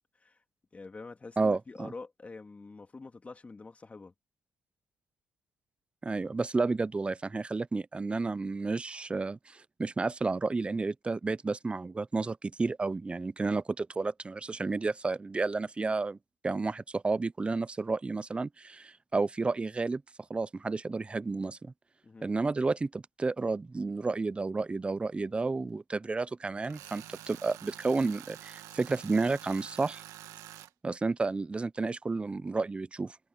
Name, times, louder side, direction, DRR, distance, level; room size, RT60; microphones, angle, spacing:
voice 1, 0.7-4.1 22.0-22.3, left 3 dB, 25° left, 2.6 m, -46 dB
voice 2, 1.4-1.9 6.0-16.2 16.4-20.0 20.3-21.7 22.2-30.0 30.8-33.2, right 3 dB, 20° right, 0.6 m, -31 dB
Tools, 26.6-30.7, right 13 dB, 75° right, 2.0 m, -48 dB
cardioid pair, 85°, 6 cm